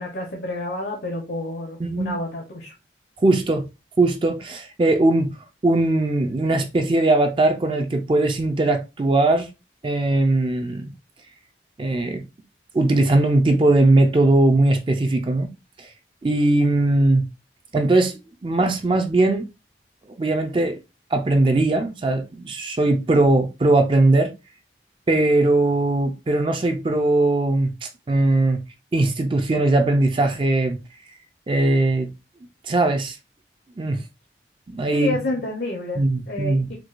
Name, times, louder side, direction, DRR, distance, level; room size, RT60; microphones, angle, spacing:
voice 1, 0.0-2.7 34.9-36.7, left 2 dB, 70° left, 0.8 m, -29 dB
voice 2, 1.8-2.1 3.2-3.7 4.0-5.3 5.6-9.5 9.8-10.9 11.8-12.2 12.7-15.5 15.8-15.9 16.2-17.2 17.7-19.5 20.2-20.8 21.1-24.3 25.1-28.6 28.9-30.8 31.5-32.1 32.6-33.2 33.8-34.0 34.7-35.2 36.0-36.7, right 2 dB, 30° right, 0.4 m, -20 dB
4.5 x 2.2 x 2.4 m
head